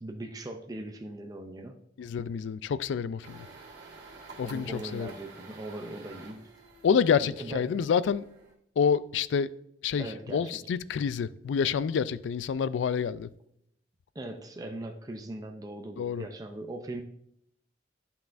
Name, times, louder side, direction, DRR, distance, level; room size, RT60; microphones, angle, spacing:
voice 1, 0.0-1.8 4.4-6.5 7.4-7.8 10.0-10.7 14.1-17.0, right 1 dB, 20° right, 0.5 m, -40 dB
voice 2, 2.0-3.5 4.4-5.1 6.8-8.3 8.8-9.5 9.8-10.1 10.3-13.3 16.0-16.2, left 6 dB, 80° left, 0.3 m, -28 dB
sound 1, 3.2-8.5, right 3 dB, 75° right, 1.8 m, -50 dB
11.0 x 5.7 x 2.5 m
head